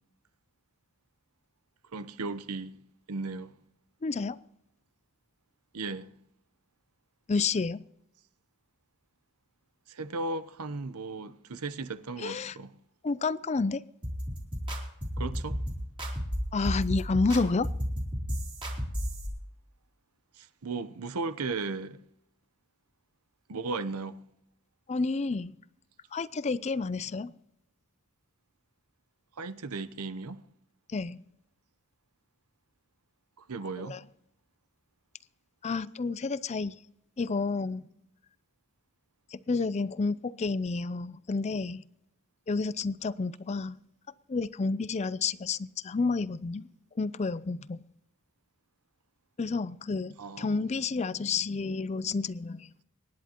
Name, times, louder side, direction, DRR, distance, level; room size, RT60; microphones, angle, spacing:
voice 1, 1.9-2.8 3.1-3.5 5.7-6.1 9.9-12.8 15.2-15.6 20.3-22.0 23.5-24.2 29.4-30.4 33.4-34.0 50.2-50.6, right 3 dB, 85° right, 0.8 m, -36 dB
voice 2, 4.0-4.4 7.3-7.8 12.2-12.6 13.0-13.8 16.5-17.7 24.9-25.5 26.1-27.3 30.9-31.2 33.8-34.0 35.6-36.8 37.2-37.8 39.3-41.8 42.5-43.8 44.3-46.7 47.0-47.8 49.4-52.7, left 4 dB, 30° left, 0.4 m, -30 dB
sound 1, 14.0-19.3, equal, 25° right, 2.9 m, -33 dB
24.5 x 10.5 x 2.9 m
head